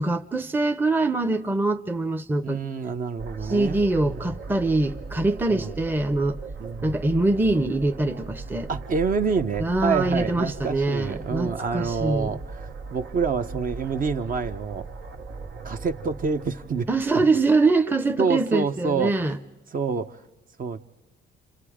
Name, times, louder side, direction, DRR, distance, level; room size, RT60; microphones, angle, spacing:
voice 1, 0.0-2.6 3.4-6.4 6.8-8.7 9.6-12.4 16.9-19.4, right 2 dB, 10° right, 0.7 m, -24 dB
voice 2, 2.4-4.2 5.5-5.7 6.6-6.9 8.7-12.4 12.9-14.9 15.6-16.9 17.1-17.2 18.2-19.1 19.7-20.2 20.6-20.8, right 5 dB, 45° right, 0.9 m, -27 dB
sound 1, 3.2-17.4, right 3 dB, 70° right, 1.3 m, -38 dB
29.5 x 27.0 x 5.0 m
cardioid pair, 90°, 20 cm